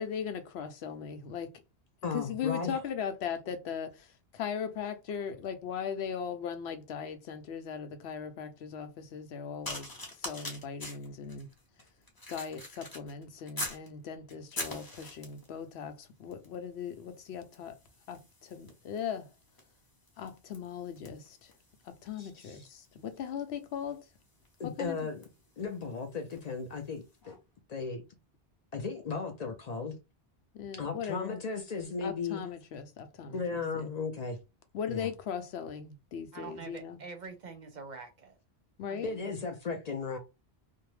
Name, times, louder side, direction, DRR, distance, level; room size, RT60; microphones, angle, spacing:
voice 1, 0.0-1.5 2.1-9.9 10.2-11.5 12.3-17.8 18.1-19.3 20.2-21.5 21.8-24.1 24.6-25.0 30.5-31.4 32.0-33.4 33.7-33.9 34.7-37.0 38.8-39.1, left 7 dB, 90° left, 0.8 m, -38 dB
voice 2, 2.0-2.8 22.2-22.7 24.6-25.2 25.6-27.4 27.7-28.0 28.7-30.0 30.8-32.4 33.3-34.4 34.9-35.1 39.0-40.2, left 4 dB, 55° left, 0.5 m, -36 dB
sound 1, 9.6-13.9 14.3-15.5 16.3-16.6 16.8-26.5 27.2-27.4, left 1 dB, 25° left, 0.7 m, -45 dB
voice 3, 36.3-38.4 38.9-39.3, right 4 dB, 50° right, 0.7 m, -45 dB
2.6 x 2.1 x 3.0 m
omnidirectional pair, 1.0 m